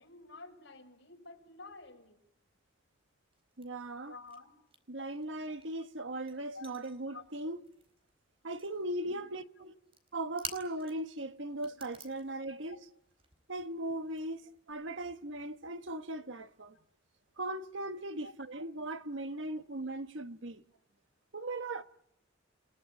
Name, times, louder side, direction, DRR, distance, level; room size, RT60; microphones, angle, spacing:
voice 1, 0.0-2.2 4.0-4.5 5.4-5.6 6.5-6.7 7.1-7.2 12.5-12.8 18.2-18.3, left 3 dB, 70° left, 5.7 m, -51 dB
sound 1, 3.3-4.4 4.7-8.2 8.4-8.9 9.8-11.1 11.4-14.7, right 4 dB, 30° right, 4.4 m, -49 dB
voice 2, 3.6-4.1 4.9-7.6 8.4-9.8 10.1-12.8 13.5-16.8 17.4-20.6 21.3-21.8, right 1 dB, 75° right, 1.4 m, -38 dB
29.0 x 18.0 x 9.2 m
head